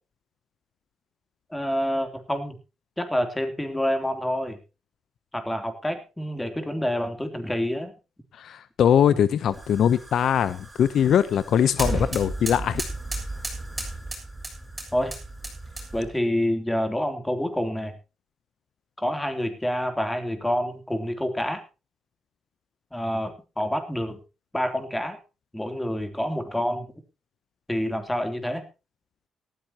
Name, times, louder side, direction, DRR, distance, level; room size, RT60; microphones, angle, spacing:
voice 1, 1.5-2.5 3.0-4.6 5.3-7.9 14.9-15.1 15.9-17.9 19.0-21.6 22.9-24.2 24.5-25.2 25.5-26.9 27.7-28.6, equal, 10° left, 7 dB, 3.2 m, -27 dB
voice 2, 8.4-12.8, left 9 dB, 65° left, 16 dB, 0.7 m, -21 dB
sound 1, 9.5-16.2, right 2 dB, 15° right, 7.1 m, -34 dB
18.0 x 14.0 x 2.9 m, 0.30 s
cardioid pair, 90°, 0 cm